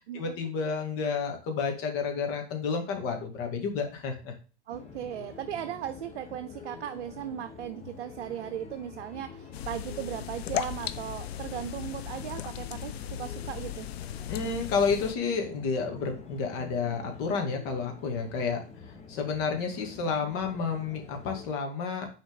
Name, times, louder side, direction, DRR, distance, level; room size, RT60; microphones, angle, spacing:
voice 1, 0.1-4.3 14.3-18.6 19.1-22.1, left 5 dB, 40° left, 4 dB, 2.3 m, -30 dB
sound 1, 4.7-21.6, left 5 dB, 20° left, 1.2 m, -47 dB
voice 2, 4.7-13.9, right 10 dB, 65° right, 9 dB, 0.7 m, -37 dB
sound 2, 9.5-15.2, left 11 dB, 60° left, 0.7 m, -37 dB
6.5 x 4.3 x 5.4 m, 0.35 s
hypercardioid pair, 110°, 35 cm